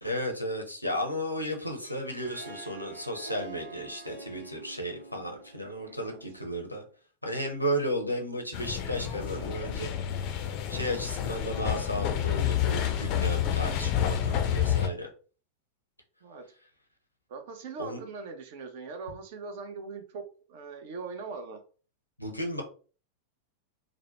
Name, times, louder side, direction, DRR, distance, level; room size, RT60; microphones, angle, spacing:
voice 1, 0.0-6.8 7.2-9.9 10.7-15.1 17.8-18.0 22.2-22.6, equal, 90° left, 2 dB, 0.6 m, -34 dB
Harp, 1.6-6.8, right 3 dB, 85° right, 0.8 m, -48 dB
voice 2, 5.6-6.2 16.2-16.4 17.3-20.2 20.5-21.6, right 4 dB, 50° right, 6 dB, 0.6 m, -41 dB
sound 1, 8.5-14.9, left 10 dB, 40° left, 0.4 m, -29 dB
3.0 x 2.1 x 2.8 m, 0.38 s
figure-of-eight pair, 90°, 0 cm